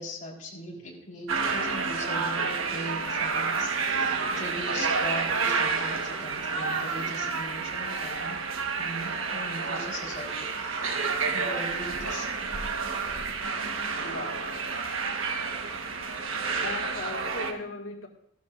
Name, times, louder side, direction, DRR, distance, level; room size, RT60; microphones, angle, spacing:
voice 1, 0.0-8.4 8.8-11.0 11.3-12.3 13.6-13.7, equal, 40° left, 3.9 m, -39 dB
sound 1, 1.3-17.5, right 4 dB, 75° right, 1.3 m, -30 dB
voice 2, 14.0-14.7 16.6-18.1, left 3 dB, 85° left, 1.9 m, -38 dB
17.0 x 12.0 x 2.5 m
head